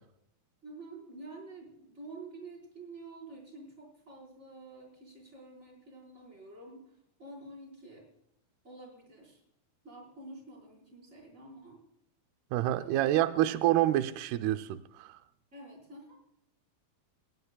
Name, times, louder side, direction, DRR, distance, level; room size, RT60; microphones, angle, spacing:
voice 1, 0.6-6.9 7.2-8.1 8.6-9.4 9.8-11.8 12.7-13.2 15.5-16.2, right 2 dB, 15° right, 0 dB, 4.7 m, -49 dB
voice 2, 12.5-15.2, right 14 dB, 90° right, 10 dB, 2.6 m, -27 dB
20.0 x 17.0 x 2.3 m, 0.73 s
omnidirectional pair, 4.5 m